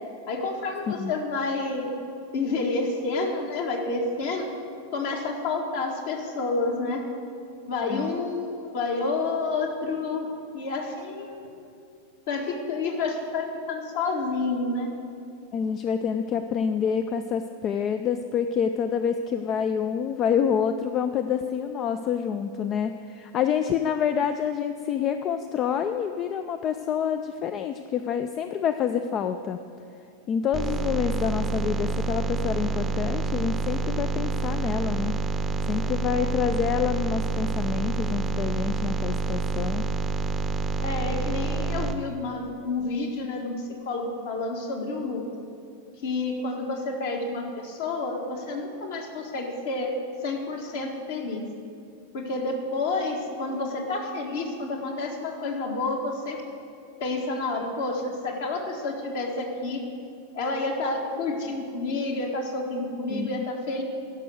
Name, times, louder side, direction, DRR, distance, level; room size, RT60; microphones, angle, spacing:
voice 1, 0.3-1.9 2.3-4.5 4.9-7.0 7.7-10.3 10.5-11.6 12.3-14.9 40.8-45.2 46.0-49.9 50.2-51.5 52.1-56.4 57.0-59.8 60.3-63.8, left 3 dB, 55° left, 2 dB, 1.6 m, -29 dB
voice 2, 15.5-29.6 30.3-35.2 35.7-39.9 63.1-63.4, left 7 dB, 30° left, 9 dB, 0.4 m, -27 dB
sound 1, 30.5-41.9, right 3 dB, 15° right, 0.7 m, -28 dB
11.5 x 6.1 x 8.0 m, 2.5 s
figure-of-eight pair, 90°, 0 cm